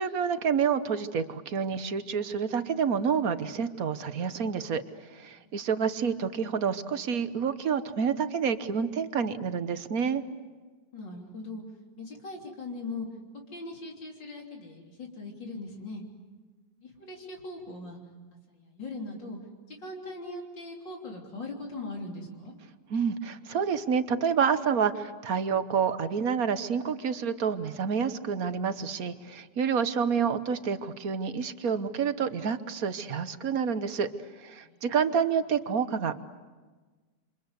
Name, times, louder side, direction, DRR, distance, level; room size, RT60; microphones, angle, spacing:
voice 1, 0.0-4.8 5.1-10.2 22.9-34.1 34.4-36.2, right 6 dB, 55° right, 11 dB, 1.4 m, -28 dB
voice 2, 5.3-5.7 10.9-11.6 12.0-13.1 13.5-16.0 16.8-18.0 18.5-19.4 19.7-22.6 34.6-34.9, left 2 dB, 75° left, 0 dB, 4.1 m, -40 dB
28.0 x 26.0 x 8.2 m, 1.4 s
omnidirectional pair, 2.0 m